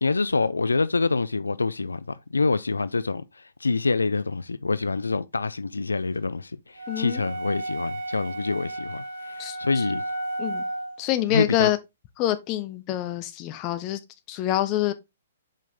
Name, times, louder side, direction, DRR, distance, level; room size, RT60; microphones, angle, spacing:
voice 1, 0.0-10.0 11.3-11.7, left 3 dB, 90° left, 0.3 m, -26 dB
sound 1, 6.8-11.0, right 2 dB, 55° right, 1.8 m, -33 dB
voice 2, 6.9-7.2 9.4-9.8 10.4-10.6 11.0-11.8 12.2-14.0 14.3-14.9, left 13 dB, 30° left, 0.9 m, -26 dB
5.4 x 5.2 x 3.5 m
hypercardioid pair, 125°, 0 cm